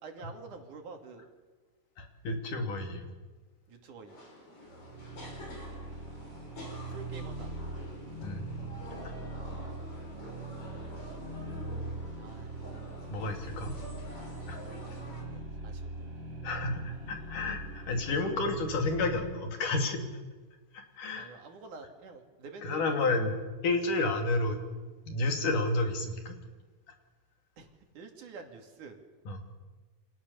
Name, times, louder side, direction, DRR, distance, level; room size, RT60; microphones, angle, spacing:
voice 1, 0.0-1.3 3.7-4.2 6.9-7.6 12.2-12.8 14.9-16.1 21.2-23.1 27.6-27.7 27.9-29.0, right 4 dB, 75° right, 4 dB, 4.0 m, -48 dB
voice 2, 2.0-3.1 8.2-8.5 13.1-13.7 14.5-14.6 16.4-20.0 20.7-21.3 22.6-23.4 23.6-24.6 25.1-26.4 29.3-29.4, left 2 dB, 80° left, 4 dB, 4.2 m, -31 dB
sound 1, 4.1-15.2, left 1 dB, 45° left, 5.9 m, -48 dB
sound 2, 4.7-19.4, right 3 dB, 35° right, 5.8 m, -41 dB
29.0 x 25.5 x 7.0 m, 1.4 s
omnidirectional pair, 3.7 m